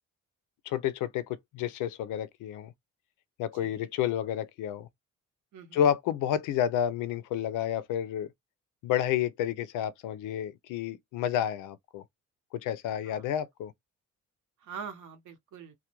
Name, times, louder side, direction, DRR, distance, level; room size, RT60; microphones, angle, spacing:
voice 1, 0.7-1.2 1.5-2.7 3.4-4.9 5.7-8.3 8.8-12.0 12.5-13.7, left 10 dB, 90° left, 0.5 m, -30 dB
voice 2, 3.5-3.9 5.5-5.8 13.0-13.3 14.6-15.7, right 6 dB, 75° right, 0.9 m, -44 dB
2.3 x 2.1 x 2.9 m
cardioid pair, 90°, 30 cm